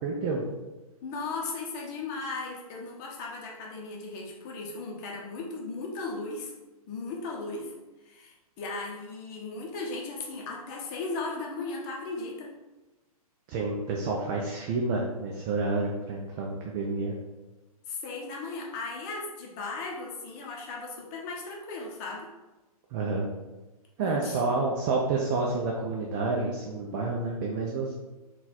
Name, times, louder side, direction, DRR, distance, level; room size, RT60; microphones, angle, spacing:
voice 1, 0.0-0.4 13.5-17.1 22.9-23.3 24.0-27.9, right 3 dB, 35° right, -1 dB, 0.6 m, -29 dB
voice 2, 1.0-6.5 6.9-7.7 8.0-12.5 17.9-22.3 24.0-24.4, left 3 dB, 35° left, -1 dB, 0.8 m, -36 dB
4.0 x 2.4 x 4.1 m, 1.1 s
figure-of-eight pair, 120°, 19 cm